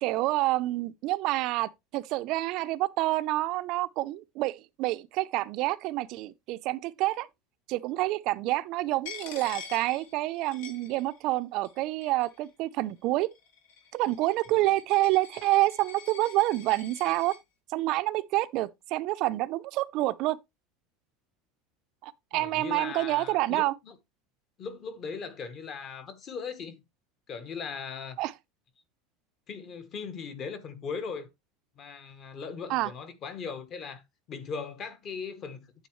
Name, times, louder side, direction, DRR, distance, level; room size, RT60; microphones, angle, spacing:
voice 1, 0.0-7.3 7.7-13.3 13.9-17.3 17.7-20.4 22.0-23.7 28.2-28.3 32.7-32.9, right 17 dB, 40° right, 0.5 m, -28 dB
Coin (dropping), 9.0-11.4 11.6-12.5 13.2-17.4, left 7 dB, 80° left, 2.7 m, -46 dB
voice 2, 22.3-24.0 24.6-26.8 27.3-28.2 29.5-31.3 31.8-34.0 34.3-35.9, left 5 dB, 30° left, 1.0 m, -39 dB
9.3 x 7.8 x 3.1 m
cardioid pair, 175°, 0 cm